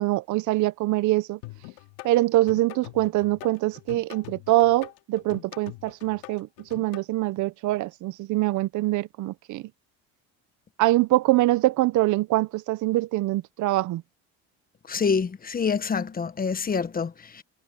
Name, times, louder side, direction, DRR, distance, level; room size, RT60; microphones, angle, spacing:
voice 1, 0.0-1.4 2.0-9.6 10.8-14.0, right 17 dB, 60° right, 0.9 m, -24 dB
sound 1, 1.4-7.0, left 20 dB, 80° left, 2.7 m, -43 dB
voice 2, 14.9-17.4, left 5 dB, 25° left, 1.3 m, -26 dB
supercardioid pair, 100°, 33 cm